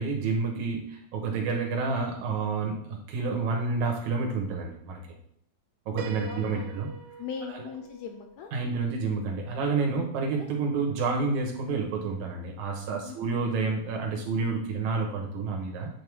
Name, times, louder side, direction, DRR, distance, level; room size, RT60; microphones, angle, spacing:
voice 1, 0.0-5.0 5.9-6.9 7.5-7.7 8.5-15.9, right 4 dB, 70° right, 1 dB, 2.5 m, -29 dB
Piano, 6.0-9.7, right 4 dB, 90° right, 2.3 m, -44 dB
voice 2, 6.2-6.7 7.2-8.5 10.3-10.5 13.0-13.4, left 6 dB, 75° left, 5 dB, 1.7 m, -40 dB
8.6 x 3.6 x 4.7 m, 0.67 s
omnidirectional pair, 3.6 m